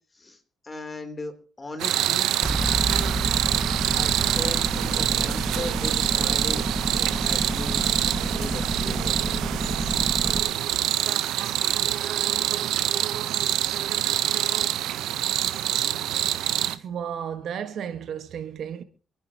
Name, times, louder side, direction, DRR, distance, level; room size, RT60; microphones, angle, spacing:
voice 1, 0.1-2.4 4.0-6.6 6.9-7.8 8.4-9.2, left 2 dB, 25° left, 3.4 m, -37 dB
sound 1, 1.8-16.8, right 12 dB, 85° right, 0.9 m, -25 dB
sound 2, 2.4-10.4, right 1 dB, 15° right, 1.7 m, -29 dB
voice 2, 16.7-18.8, right 8 dB, 70° right, 1.5 m, -33 dB
27.0 x 10.0 x 3.0 m
cardioid pair, 90°, 0 cm